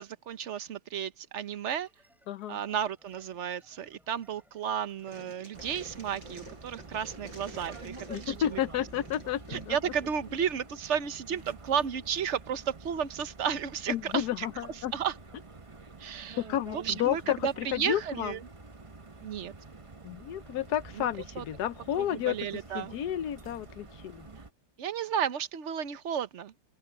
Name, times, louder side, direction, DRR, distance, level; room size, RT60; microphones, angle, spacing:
voice 1, 0.0-1.9 2.5-8.6 9.5-14.5 14.9-15.1 16.0-16.4 16.7-18.4 19.2-19.5 20.9-21.1 21.3-21.4 22.0-22.9 24.8-26.5, right 8 dB, 50° right, 1.0 m, -33 dB
sound 1, 1.8-10.1, equal, ahead, 7.3 m, -67 dB
voice 2, 2.3-2.6 8.1-9.8 13.9-14.9 16.4-18.3 20.0-22.5 22.7-24.3, left 11 dB, 65° left, 1.2 m, -31 dB
sound 2, 4.9-10.4, right 2 dB, 85° right, 7.8 m, -49 dB
sound 3, 5.5-24.5, right 3 dB, 25° right, 0.8 m, -48 dB
open air
omnidirectional pair, 2.0 m